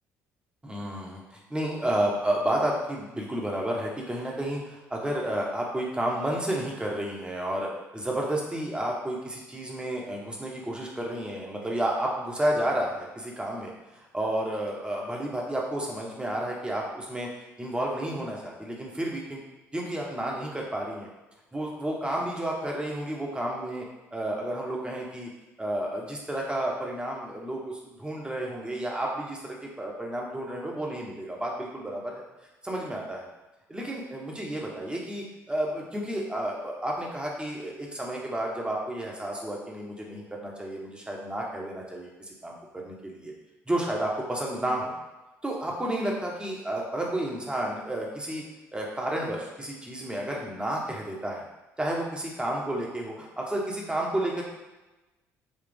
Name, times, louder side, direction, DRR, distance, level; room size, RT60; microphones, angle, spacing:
voice 1, 0.6-7.7 7.9-17.3 17.6-19.4 19.7-21.1 21.5-23.8 24.1-25.3 25.6-32.2 32.6-33.2 33.7-43.3 43.7-44.9 45.4-48.4 48.7-51.4 51.8-54.4, right 1 dB, 15° right, -2 dB, 1.1 m, -31 dB
4.2 x 2.3 x 3.5 m, 1.1 s
hypercardioid pair, 55°, 7 cm